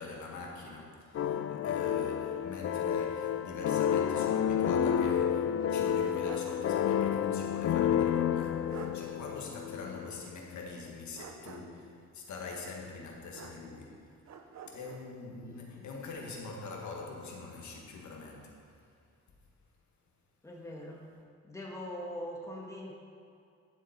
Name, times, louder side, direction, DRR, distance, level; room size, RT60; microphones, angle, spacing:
voice 1, 0.0-14.2 14.6-18.8, left 3 dB, 75° left, -1 dB, 1.7 m, -43 dB
sound 1, 1.1-10.2, left 9 dB, 50° left, 0.4 m, -30 dB
sound 2, 5.6-6.6 6.9-7.0 8.3-8.4 8.7-9.0 11.1-11.9 13.3-13.9 14.3-15.1, right 6 dB, 65° right, 0.8 m, -48 dB
voice 2, 15.4-15.8 20.4-21.0 21.4-22.9, equal, 10° left, -3 dB, 1.5 m, -42 dB
11.5 x 7.4 x 4.3 m, 2.5 s
cardioid pair, 120°, 29 cm